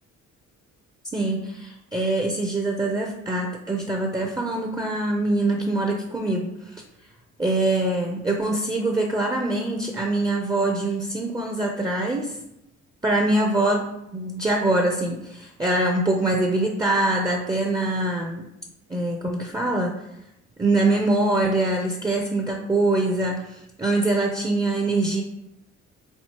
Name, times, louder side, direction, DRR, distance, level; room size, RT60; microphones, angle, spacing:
voice 1, 1.1-6.8 7.4-12.3 13.0-18.5 18.9-19.9 20.6-25.2, right 2 dB, 15° right, 2 dB, 0.5 m, -24 dB
4.6 x 3.9 x 2.9 m, 0.87 s
cardioid pair, 90°, 30 cm